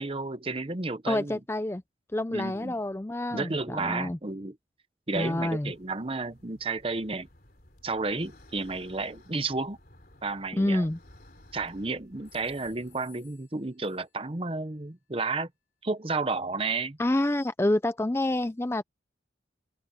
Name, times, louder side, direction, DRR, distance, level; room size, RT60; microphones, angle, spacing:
voice 1, 0.0-1.4 2.3-2.8 3.3-4.6 5.1-7.3 7.8-9.8 10.2-10.9 11.5-15.5 15.8-17.0, right 3 dB, 30° right, 0.9 m, -32 dB
voice 2, 1.1-1.8 2.1-4.2 5.1-5.7 10.5-11.0 17.0-18.8, left 1 dB, 15° left, 0.4 m, -28 dB
sound 1, 5.1-13.0, left 1 dB, 50° left, 3.5 m, -56 dB
sound 2, 11.1-11.7 12.2-14.4, left 16 dB, 65° left, 4.8 m, -61 dB
open air
head